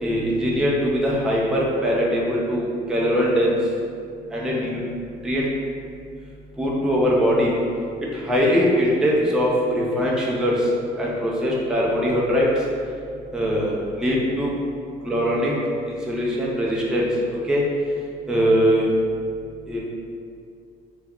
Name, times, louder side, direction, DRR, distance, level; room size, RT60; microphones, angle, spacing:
voice 1, 0.0-3.5 4.3-4.8 5.2-5.5 6.6-7.6 8.1-10.7 11.0-12.5 13.3-14.5 15.0-15.5 15.9-17.1 17.5-17.6 18.3-18.9 19.7-19.8, equal, 5° right, -5 dB, 0.4 m, -21 dB
2.3 x 2.0 x 3.5 m, 2.3 s
cardioid pair, 110°, 17 cm